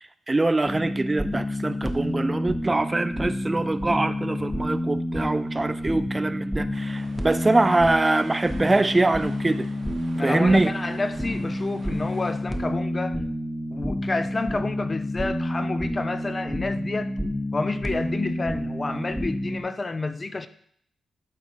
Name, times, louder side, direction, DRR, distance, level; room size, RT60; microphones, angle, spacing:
voice 1, 0.3-9.7 10.2-10.7, right 2 dB, 25° right, 0.4 m, -23 dB
sound 1, 0.7-19.6, equal, 5° left, 1.2 m, -29 dB
sound 2, 6.7-12.4, right 4 dB, 80° right, 1.6 m, -48 dB
voice 2, 10.1-13.2 13.7-17.1 17.5-20.5, left 3 dB, 35° left, 0.7 m, -29 dB
12.0 x 4.2 x 4.6 m
cardioid pair, 65°, 0 cm